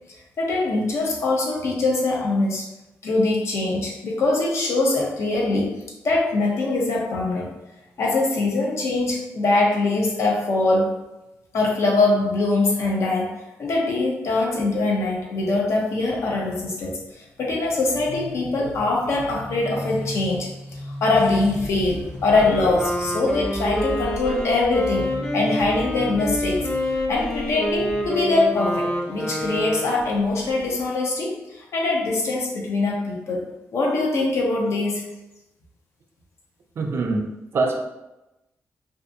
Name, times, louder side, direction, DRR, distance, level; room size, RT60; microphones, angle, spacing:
voice 1, 0.4-2.7 3.0-5.8 6.0-7.5 8.0-10.9 11.5-13.3 13.6-26.7 27.1-33.4 33.7-35.1, left 2 dB, 65° left, -1 dB, 0.6 m, -23 dB
sound 1, 19.0-30.9, equal, 50° left, 1.0 m, -37 dB
Wind instrument woodwind instrument, 22.1-30.1, left 1 dB, 15° left, 0.4 m, -27 dB
voice 2, 36.8-37.8, right 3 dB, 50° right, 3 dB, 0.4 m, -24 dB
2.5 x 2.4 x 2.5 m, 0.96 s
wide cardioid pair, 130°, 5 cm